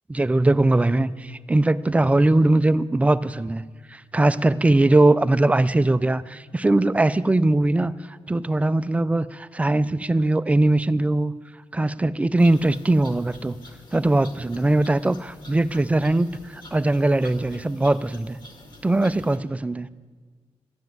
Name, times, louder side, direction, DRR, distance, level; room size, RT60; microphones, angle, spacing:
voice 1, 0.1-3.6 3.9-11.3 11.7-13.6 13.9-18.4 18.8-19.9, right 2 dB, 10° right, 15 dB, 0.3 m, -21 dB
sound 1, 12.4-19.4, left 1 dB, 40° left, 2.0 m, -47 dB
13.0 x 9.5 x 9.2 m, 1.5 s
wide cardioid pair, 165°, 11 cm